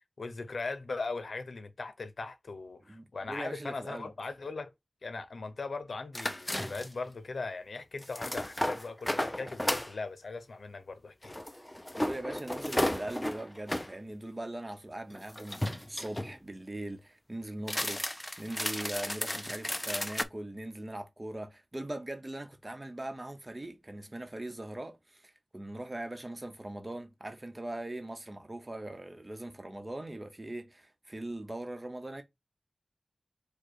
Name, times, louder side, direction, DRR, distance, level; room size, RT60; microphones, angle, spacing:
voice 1, 0.0-4.7 5.0-11.4, left 3 dB, 80° left, 0.7 m, -39 dB
voice 2, 2.9-4.1 11.9-32.2, right 1 dB, 30° right, 0.9 m, -41 dB
sound 1, 6.1-7.1 8.0-9.9 11.2-13.9 15.1-16.4 17.6-20.2, left 1 dB, 15° left, 0.5 m, -34 dB
4.7 x 2.3 x 4.6 m
wide cardioid pair, 70°, 0 cm